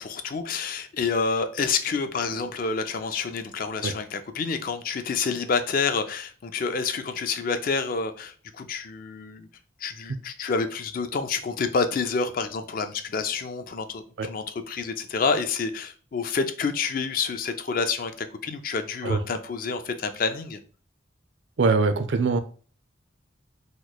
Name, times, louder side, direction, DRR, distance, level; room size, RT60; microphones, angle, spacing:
voice 1, 0.0-9.5 9.8-20.6, left 5 dB, 45° left, 0.4 m, -28 dB
voice 2, 21.6-22.4, right 4 dB, 65° right, 0.4 m, -22 dB
3.0 x 2.2 x 4.0 m
head